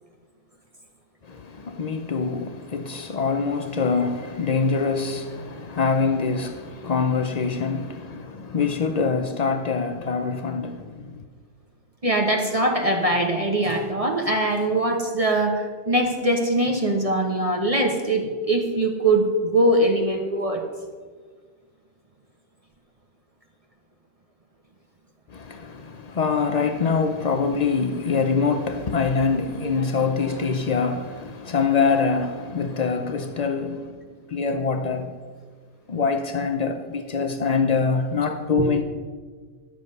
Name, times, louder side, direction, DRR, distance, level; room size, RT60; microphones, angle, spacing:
voice 1, 1.2-11.2 25.3-33.9 34.3-35.1 35.9-38.8, left 5 dB, 90° left, 0.3 m, -24 dB
voice 2, 12.0-20.6, right 1 dB, 30° right, 0.9 m, -22 dB
12.0 x 7.4 x 5.4 m
omnidirectional pair, 1.6 m